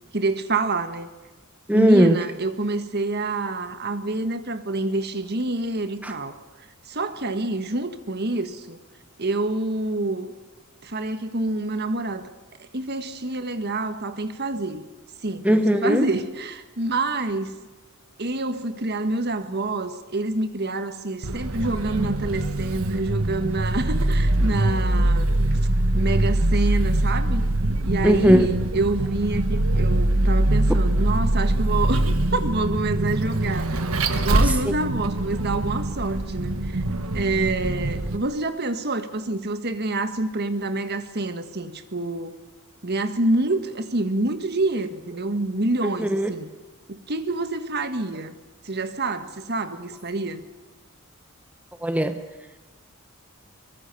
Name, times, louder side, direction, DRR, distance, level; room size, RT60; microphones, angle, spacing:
voice 1, 0.1-1.1 1.7-6.4 6.9-8.8 9.2-10.3 10.8-12.3 12.6-14.9 15.2-17.6 18.2-25.6 25.9-27.4 27.8-33.8 34.1-42.3 42.8-46.5 46.9-48.3 48.6-50.4, right 2 dB, 50° right, 1.5 m, -27 dB
voice 2, 1.7-2.2 6.0-6.1 15.4-16.0 28.0-28.5 34.7-34.8 45.8-46.3 51.8-52.2, equal, 5° right, 0.9 m, -18 dB
Vehicle, 21.2-38.2, right 1 dB, 75° right, 1.5 m, -23 dB
23.5 x 21.5 x 7.0 m
head